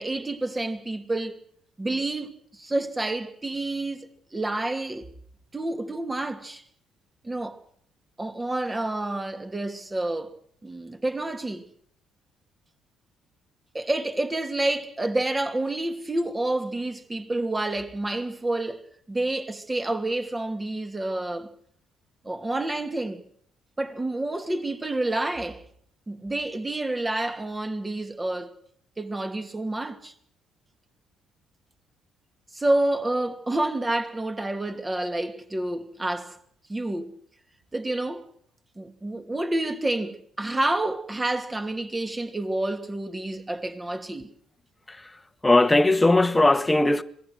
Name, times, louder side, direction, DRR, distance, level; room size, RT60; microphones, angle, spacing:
voice 1, 0.0-1.4 1.8-5.1 5.5-6.6 7.2-7.6 8.2-10.4 10.6-11.6 13.7-21.5 22.2-23.2 23.8-25.6 26.1-28.5 29.0-30.1 32.5-36.4 36.7-37.1 37.7-38.3 38.8-44.3, right 2 dB, 20° right, 2.7 m, -29 dB
voice 2, 44.9-47.0, left 2 dB, 15° left, 1.5 m, -20 dB
26.0 x 19.5 x 6.4 m
hypercardioid pair, 50°, 0 cm